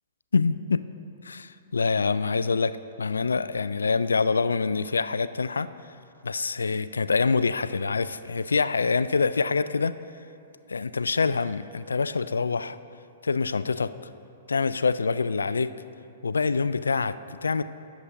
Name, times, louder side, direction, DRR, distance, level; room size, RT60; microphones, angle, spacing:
voice 1, 0.3-0.8 1.2-5.7 6.2-9.9 10.7-12.8 13.2-13.9 14.5-15.7 16.2-17.6, left 4 dB, 75° left, 15 dB, 0.3 m, -25 dB
19.0 x 7.2 x 2.7 m, 2.7 s
figure-of-eight pair, 110°, 0 cm